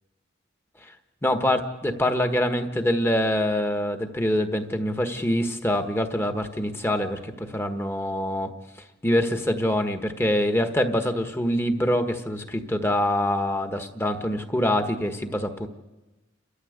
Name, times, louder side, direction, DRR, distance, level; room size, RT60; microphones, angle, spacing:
voice 1, 1.2-8.5 9.0-15.7, left 1 dB, 15° left, 7 dB, 1.4 m, -25 dB
29.5 x 13.5 x 8.1 m, 1.1 s
head